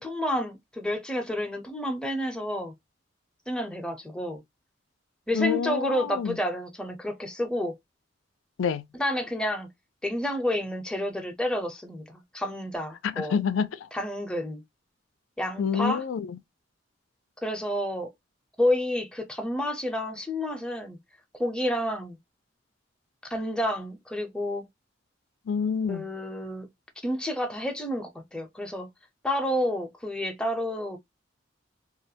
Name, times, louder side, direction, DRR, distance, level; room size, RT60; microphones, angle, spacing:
voice 1, 0.0-2.7 3.5-4.4 5.3-7.8 8.9-9.7 10.0-13.4 13.9-14.6 15.4-16.0 17.4-18.1 18.6-21.0 21.4-22.2 23.2-24.6 25.9-26.7 27.0-28.9 29.2-31.0, left 1 dB, 5° left, 0.5 m, -30 dB
voice 2, 5.3-6.4 8.6-8.8 13.0-13.8 15.6-16.4 25.5-26.1, left 6 dB, 90° left, 0.4 m, -27 dB
2.4 x 2.1 x 2.6 m
head